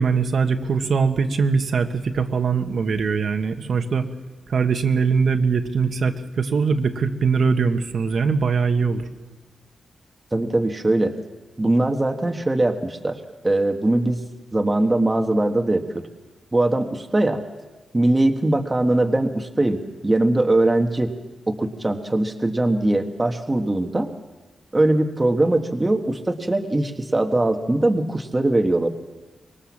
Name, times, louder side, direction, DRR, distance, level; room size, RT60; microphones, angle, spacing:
voice 1, 0.0-4.1 4.5-9.0, right 5 dB, 55° right, 6 dB, 1.5 m, -21 dB
voice 2, 10.3-11.1 11.6-14.2 14.5-16.1 16.5-17.4 17.9-21.1 21.5-24.1 24.7-28.9, right 2 dB, 15° right, 5 dB, 1.4 m, -21 dB
25.0 x 23.0 x 7.4 m, 1.2 s
wide cardioid pair, 175°, 0 cm